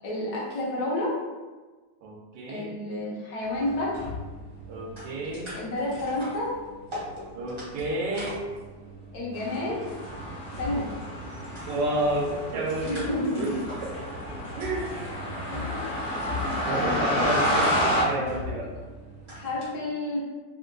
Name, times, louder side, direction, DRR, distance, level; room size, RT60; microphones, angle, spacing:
voice 1, 0.0-1.2 2.5-4.0 5.5-6.6 9.1-9.9 10.6-10.9 12.8-13.6 15.5-15.8 16.6-17.6 18.1-18.5 19.3-20.2, left 1 dB, 70° left, -5 dB, 1.2 m, -30 dB
voice 2, 2.0-2.7 4.7-5.5 7.3-8.4 11.7-13.5 13.8-13.9 14.6-15.0 15.6-15.7 16.3-17.7 18.0-18.7, right 1 dB, 75° right, -2 dB, 1.2 m, -30 dB
sound 1, 3.4-19.7, left 1 dB, 35° right, 0.4 m, -41 dB
sound 2, 9.3-18.0, equal, 90° left, 0.3 m, -30 dB
3.5 x 2.2 x 2.4 m, 1.3 s
omnidirectional pair, 1.9 m